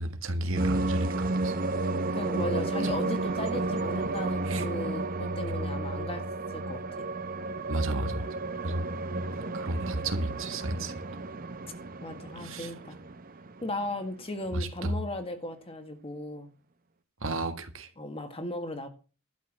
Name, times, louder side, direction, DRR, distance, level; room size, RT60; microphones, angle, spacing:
voice 1, 0.0-1.5 2.8-2.9 4.4-4.7 7.7-8.3 8.6-8.8 9.5-10.9 12.4-12.7 14.5-14.9 17.2-17.9, right 2 dB, 65° right, 1.6 m, -32 dB
sound 1, 0.6-13.9, right 2 dB, 40° right, 0.8 m, -32 dB
voice 2, 2.1-6.2 6.5-7.1 8.6-9.0 12.0-13.0 13.6-16.5 18.0-18.9, left 1 dB, 25° left, 1.7 m, -36 dB
12.0 x 5.5 x 7.7 m
head